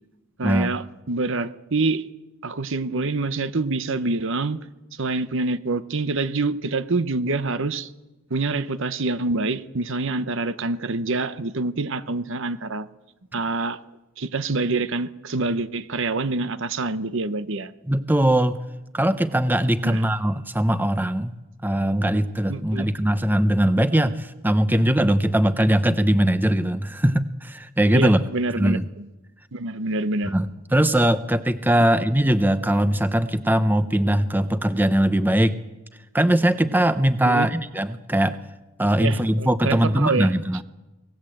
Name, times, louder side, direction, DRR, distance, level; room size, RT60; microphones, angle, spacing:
voice 1, 0.4-2.0 2.4-4.6 5.0-7.9 8.3-12.9 13.3-13.8 14.2-17.7 19.8-20.0 22.5-22.9 27.9-29.1 29.5-30.3 37.2-37.5 39.0-40.3, right 3 dB, 60° right, 13 dB, 1.0 m, -26 dB
voice 2, 17.9-18.6 18.9-21.3 21.6-28.3 28.6-28.8 30.2-35.6 36.1-38.4 38.8-40.6, right 1 dB, 10° right, 11 dB, 0.7 m, -21 dB
24.5 x 19.0 x 7.8 m, 1.1 s
head